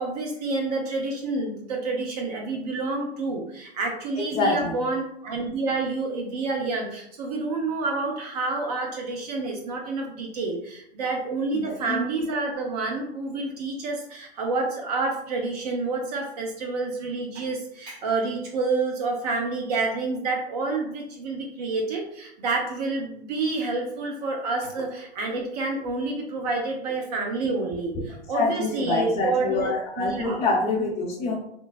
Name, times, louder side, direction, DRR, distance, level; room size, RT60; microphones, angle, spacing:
voice 1, 0.0-30.6, right 3 dB, 40° right, 1 dB, 0.4 m, -28 dB
voice 2, 4.3-4.8 11.5-12.0 28.3-31.3, left 3 dB, 20° left, -3 dB, 0.6 m, -26 dB
3.1 x 2.1 x 2.3 m, 0.74 s
hypercardioid pair, 130°, 32 cm